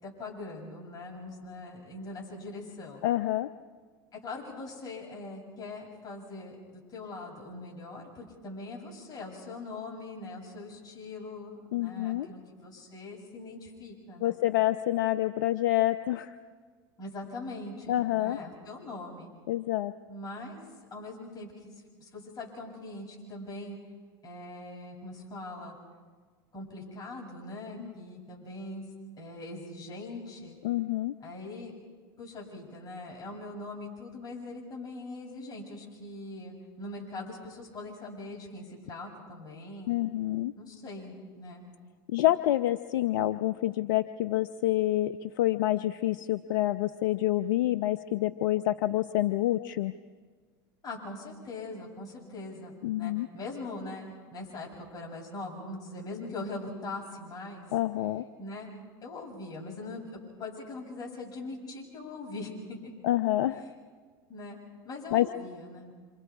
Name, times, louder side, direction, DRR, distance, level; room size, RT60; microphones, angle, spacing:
voice 1, 0.0-3.0 4.1-14.4 17.0-19.3 20.1-20.6 20.9-21.7 22.0-23.8 24.2-25.8 26.5-28.8 29.2-30.6 31.2-31.7 32.2-40.0 40.5-41.7 50.8-57.6 58.4-58.7 59.0-62.9 63.5-63.8 64.3-64.6 64.8-65.9, left 2 dB, 30° left, -1 dB, 7.9 m, -42 dB
voice 2, 3.0-3.5 11.7-12.3 14.2-16.3 17.9-18.4 19.5-19.9 27.8-27.9 30.6-31.1 39.9-40.5 42.1-49.9 52.8-53.3 57.7-58.2 63.0-63.6 65.1-65.3, left 15 dB, 75° left, 10 dB, 0.7 m, -27 dB
28.0 x 27.0 x 4.9 m, 1.5 s
hypercardioid pair, 95°, 12 cm